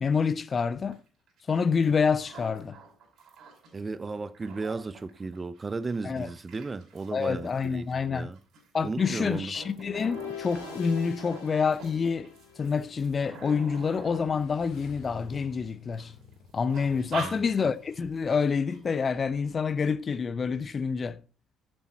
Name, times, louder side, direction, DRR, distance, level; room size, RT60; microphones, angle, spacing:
voice 1, 0.0-1.0 1.5-2.8 6.0-6.3 7.1-8.3 8.7-12.3 12.6-16.1 16.5-21.2, left 5 dB, 35° left, 0.6 m, -27 dB
sound 1, 0.9-1.0 1.3-3.8 4.1-15.5 16.0-16.3 16.7-18.0 18.3-18.4 18.7-19.1, right 3 dB, 50° right, 5.1 m, -45 dB
voice 2, 3.7-8.4 8.8-9.5 17.1-17.4, right 3 dB, 25° right, 0.8 m, -35 dB
Motorcycle / Engine, 9.5-19.3, left 5 dB, 55° left, 2.4 m, -55 dB
sound 2, 9.7-13.0, left 7 dB, 70° left, 2.8 m, -42 dB
11.5 x 7.9 x 4.2 m
figure-of-eight pair, 50°, 0 cm